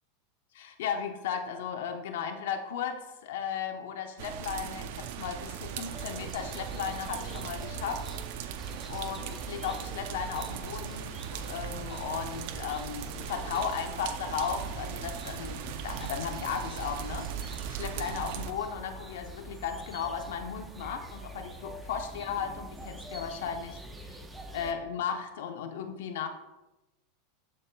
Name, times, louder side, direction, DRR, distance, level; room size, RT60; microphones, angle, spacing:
voice 1, 0.5-8.1 8.9-24.2 24.5-26.3, left 7 dB, 80° left, 6 dB, 0.8 m, -35 dB
sound 1, 4.2-18.5, right 8 dB, 65° right, 0.5 m, -39 dB
sound 2, 5.9-24.7, right 1 dB, 10° right, 0.6 m, -45 dB
12.0 x 4.3 x 2.3 m, 1.0 s
supercardioid pair, 130°, 0 cm